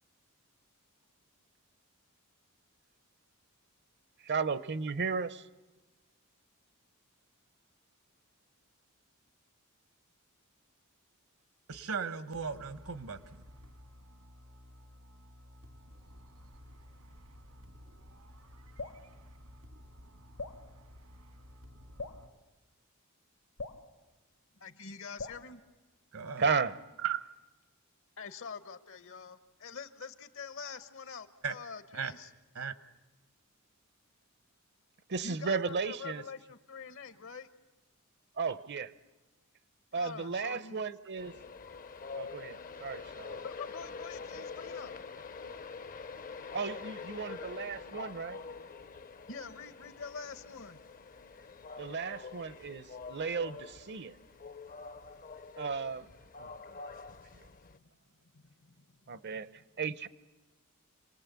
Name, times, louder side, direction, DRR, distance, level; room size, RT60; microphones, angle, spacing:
voice 1, 4.2-5.4 26.4-26.8 35.1-36.2 38.4-38.9 39.9-41.3 42.1-43.4 44.3-44.4 46.5-48.4 51.8-54.2 55.6-56.1 56.4-56.8 59.1-60.1, right 5 dB, 50° right, 16 dB, 0.7 m, -35 dB
voice 2, 11.7-13.4 26.1-26.4 27.0-27.2 31.4-31.5 31.9-32.1 32.5-32.7, right 7 dB, 70° right, 14 dB, 1.1 m, -36 dB
sound 1, 12.3-22.3, equal, 85° right, 2.2 m, -54 dB
Drip, 18.8-19.0 20.4-20.6 22.0-22.2 23.6-23.8 25.2-25.5, left 3 dB, 80° left, 1.9 m, -41 dB
voice 3, 24.6-25.6 28.2-32.3 35.2-37.5 39.9-40.8 43.4-44.9 49.3-50.8 57.6-57.8 58.3-59.2, left 5 dB, 60° left, 13 dB, 1.2 m, -45 dB
Train, 41.2-57.8, left 4 dB, 40° left, 0.7 m, -46 dB
27.0 x 20.0 x 8.4 m, 1.2 s
head